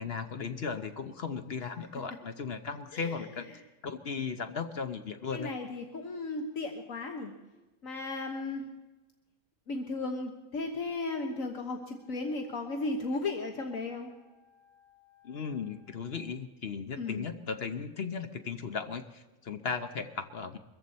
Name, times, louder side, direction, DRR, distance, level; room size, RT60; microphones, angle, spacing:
voice 1, 0.0-3.5 3.8-5.5 15.2-20.6, left 5 dB, 50° left, 8 dB, 0.9 m, -36 dB
voice 2, 5.3-7.3 7.8-8.6 9.7-14.1 17.0-17.3, left 3 dB, 65° left, 3 dB, 1.6 m, -35 dB
Wind instrument woodwind instrument, 10.6-16.3, left 8 dB, 50° right, 6.7 m, -64 dB
22.5 x 14.5 x 4.2 m, 1.1 s
omnidirectional pair, 1.5 m